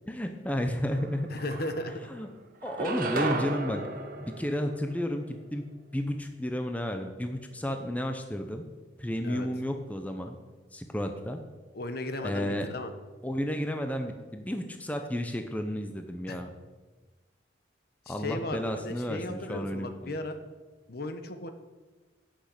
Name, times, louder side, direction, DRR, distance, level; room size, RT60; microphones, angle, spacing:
voice 1, 0.1-1.3 2.1-2.3 2.6-3.8 4.2-5.6 5.9-8.7 9.0-10.4 10.7-11.4 12.2-12.7 13.2-16.5 18.1-20.1, equal, 10° left, 5 dB, 0.7 m, -32 dB
sound 1, 1.0-1.1 1.4-2.2 2.6-5.2, right 2 dB, 50° right, 1.2 m, -34 dB
voice 2, 1.3-1.9 9.2-9.5 11.7-12.9 16.3-16.4 18.1-20.4 20.9-21.5, left 1 dB, 55° left, 8 dB, 1.0 m, -35 dB
11.0 x 6.4 x 8.3 m, 1.3 s
head